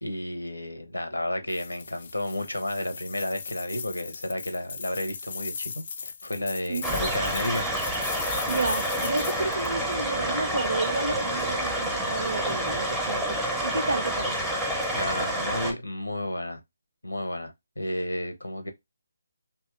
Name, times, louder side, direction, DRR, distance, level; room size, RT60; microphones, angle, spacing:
voice 1, 0.0-7.7 14.9-16.6 17.0-18.7, left 1 dB, 90° left, 0.8 m, -32 dB
sound 1, 1.5-9.7, left 5 dB, 50° left, 0.3 m, -38 dB
sound 2, 6.8-15.7, right 1 dB, ahead, 0.6 m, -28 dB
voice 2, 8.5-13.4 13.6-14.4, right 2 dB, 75° right, 0.4 m, -31 dB
2.8 x 2.3 x 3.2 m
figure-of-eight pair, 150°, 0 cm